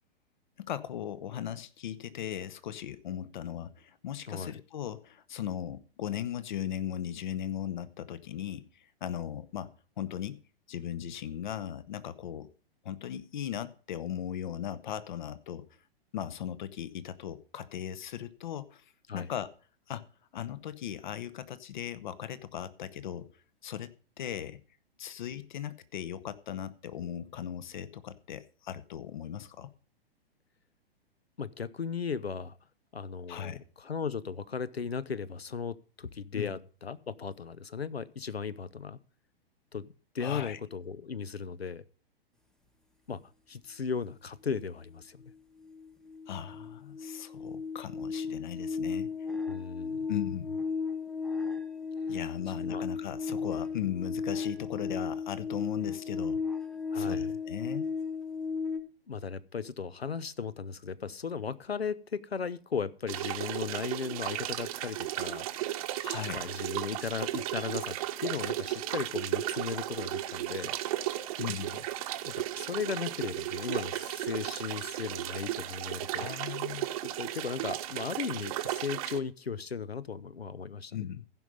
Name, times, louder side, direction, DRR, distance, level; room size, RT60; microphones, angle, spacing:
voice 1, 0.6-9.7 10.0-10.4 10.7-12.5 12.8-15.6 16.1-18.8 19.1-19.5 19.9-20.1 20.3-23.3 23.6-24.6 25.0-29.7 33.3-33.6 36.3-36.6 40.2-40.6 46.3-49.1 50.1-50.6 52.1-56.4 56.9-57.9 66.0-66.5 71.4-71.8 76.2-76.9 80.9-81.2, left 10 dB, 50° left, 0.9 m, -38 dB
voice 2, 31.4-32.6 32.9-39.0 39.7-41.8 43.1-43.2 43.5-45.2 49.5-50.1 52.6-52.8 56.9-57.3 59.1-65.4 66.3-70.8 72.2-76.3 77.0-81.1, left 6 dB, 80° left, 0.7 m, -36 dB
sound 1, 45.2-45.3 45.6-58.8, left 5 dB, ahead, 0.5 m, -35 dB
sound 2, 63.1-79.2, right 14 dB, 35° right, 0.9 m, -35 dB
15.5 x 5.5 x 5.2 m
figure-of-eight pair, 110°, 30 cm